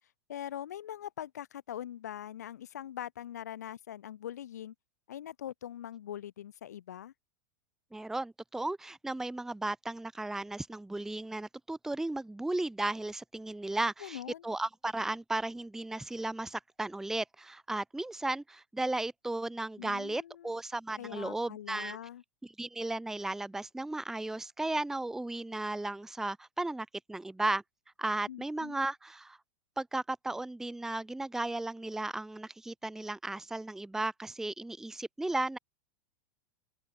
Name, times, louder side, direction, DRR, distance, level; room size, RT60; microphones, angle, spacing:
voice 1, 0.3-4.7 5.1-7.1 13.7-14.5 19.8-20.6 21.0-22.2 28.3-28.8, left 11 dB, 60° left, 5.6 m, -42 dB
voice 2, 7.9-22.0 22.6-27.6 28.0-29.4 29.8-35.6, right 2 dB, 5° right, 0.9 m, -35 dB
open air
figure-of-eight pair, 90°, 10 cm